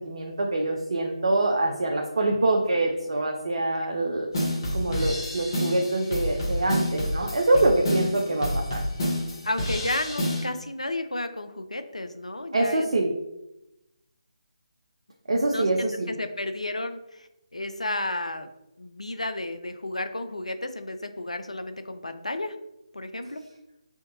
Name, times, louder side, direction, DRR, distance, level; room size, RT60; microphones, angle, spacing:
voice 1, 0.0-4.3 4.7-8.8 12.5-13.1 15.3-16.1, right 2 dB, 60° right, 1 dB, 0.5 m, -25 dB
sound 1, 4.3-10.4, left 1 dB, 40° left, 1.2 m, -29 dB
voice 2, 9.4-12.9 15.5-18.5 18.8-22.6 22.9-23.4, left 2 dB, 80° left, 9 dB, 0.4 m, -32 dB
3.5 x 2.6 x 4.0 m, 0.89 s
figure-of-eight pair, 150°, 3 cm